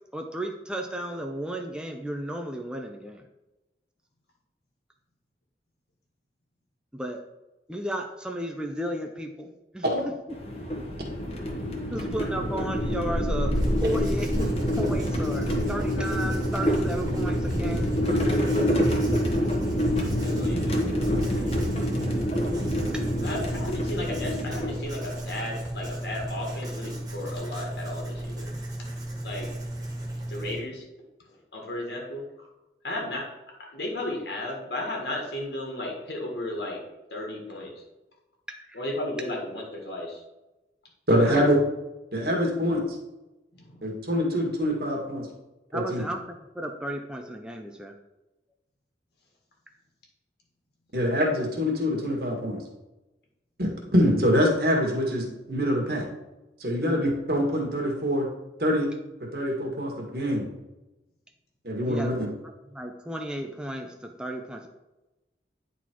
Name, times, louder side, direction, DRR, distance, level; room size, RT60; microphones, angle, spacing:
voice 1, 0.1-3.2 6.9-7.2 7.7-9.9 11.9-13.5 13.8-17.9 22.9-23.1 38.5-38.8 41.2-41.5 45.7-47.9 56.8-57.1 61.8-62.1 62.7-64.7, right 1 dB, 5° right, 3 dB, 0.5 m, -34 dB
sound 1, 10.3-25.3, equal, 35° left, 1.2 m, -27 dB
Writing, 13.5-30.6, right 1 dB, 20° right, 1.6 m, -35 dB
voice 2, 20.2-21.5 23.2-28.5 29.2-29.5 30.3-30.8 31.2-32.2 32.8-33.3 33.7-36.8 37.1-37.8 38.7-40.2 43.5-43.9, left 1 dB, 70° left, -1 dB, 1.6 m, -34 dB
voice 3, 41.1-41.6 42.1-42.8 43.8-45.3 45.7-46.0 50.9-52.6 53.6-56.1 56.6-58.3 58.6-58.9 59.2-60.4 61.6-62.3, equal, 60° right, 0 dB, 1.9 m, -25 dB
9.9 x 4.2 x 4.5 m, 1.0 s
head